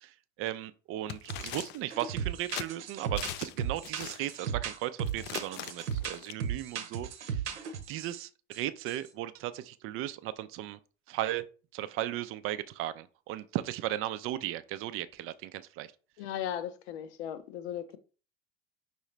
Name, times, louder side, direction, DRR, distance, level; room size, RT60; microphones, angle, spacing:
voice 1, 0.0-10.8 11.1-11.4 11.7-15.9, right 14 dB, 40° right, 0.5 m, -36 dB
sound 1, 1.1-1.9 2.5-2.7 3.2-3.6 3.8-4.4 5.1-6.3, left 12 dB, 30° left, 0.4 m, -40 dB
sound 2, 1.3-1.6 1.9-8.2 8.5-9.1, right 7 dB, 70° right, 0.9 m, -36 dB
voice 2, 16.2-18.0, left 10 dB, 65° left, 0.7 m, -37 dB
5.5 x 3.1 x 3.1 m
figure-of-eight pair, 75°, 36 cm